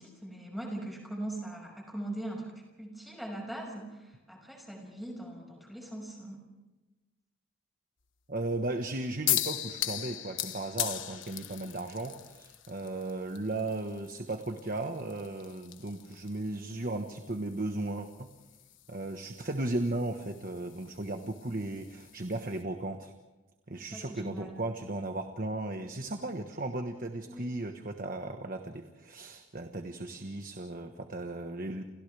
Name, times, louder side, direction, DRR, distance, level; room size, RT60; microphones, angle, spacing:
voice 1, 0.0-2.5 2.8-6.4 23.8-24.5 27.3-27.4, right 1 dB, ahead, 0 dB, 5.9 m, -41 dB
voice 2, 8.3-18.3 18.9-23.1 23.7-31.8, right 2 dB, 45° right, 5 dB, 1.3 m, -36 dB
sound 1, 9.3-22.6, left 13 dB, 70° left, 1.3 m, -39 dB
29.5 x 29.5 x 3.5 m, 1.1 s
head